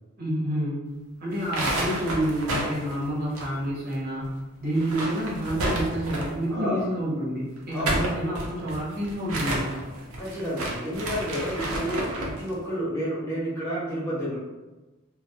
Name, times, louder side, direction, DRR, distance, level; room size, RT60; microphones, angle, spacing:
voice 1, 0.2-0.8 1.2-4.3 4.6-9.8, equal, 45° right, -6 dB, 0.8 m, -28 dB
sound 1, 1.3-4.0 4.2-4.3 4.7-6.5 7.6-12.4, right 1 dB, 90° right, 0.5 m, -31 dB
voice 2, 6.5-6.9 7.7-8.0 10.2-14.4, equal, 10° left, -8 dB, 0.5 m, -30 dB
2.2 x 2.1 x 2.6 m, 1.1 s
head